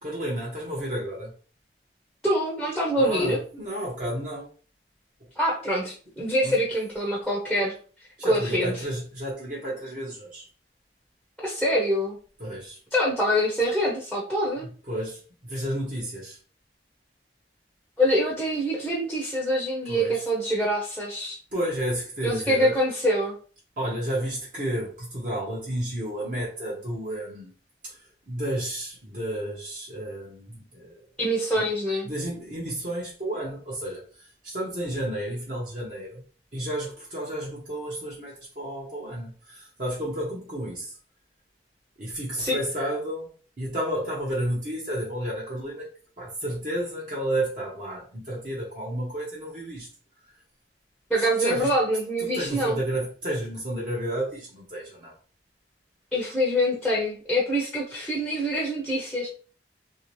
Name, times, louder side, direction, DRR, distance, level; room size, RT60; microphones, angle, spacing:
voice 1, 0.0-1.3 2.9-4.5 6.4-6.6 8.2-10.5 12.4-12.8 14.9-16.4 19.8-20.2 21.5-22.8 23.8-27.5 27.8-28.0 28.3-31.1 31.5-31.7 32.1-36.2 36.5-41.0 42.0-43.3 43.6-45.9 46.2-49.9 51.2-51.7 52.3-55.1, right 1 dB, 50° right, -5 dB, 0.9 m, -31 dB
voice 2, 2.2-3.4 5.4-7.7 8.2-8.7 11.4-12.2 12.9-14.7 18.0-21.4 22.2-23.3 31.2-32.1 42.4-42.6 51.1-52.8 56.1-59.3, equal, ahead, -4 dB, 0.6 m, -25 dB
2.9 x 2.8 x 3.0 m, 0.39 s
head